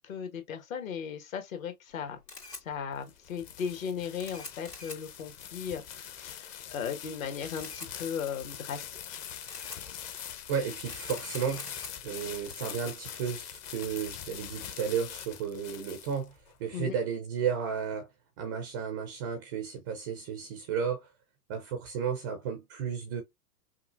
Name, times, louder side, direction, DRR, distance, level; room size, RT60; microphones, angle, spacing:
voice 1, 0.0-2.2 2.6-9.2 16.7-17.0, left 7 dB, 55° left, 1.6 m, -37 dB
Camera, 1.9-15.3, left 3 dB, 85° left, 2.4 m, -49 dB
sound 1, 2.7-16.5, left 9 dB, 30° left, 0.8 m, -43 dB
voice 2, 10.5-18.1 18.4-21.1 21.5-23.2, right 7 dB, 15° right, 0.4 m, -33 dB
5.7 x 2.5 x 2.4 m
figure-of-eight pair, 105°, 47 cm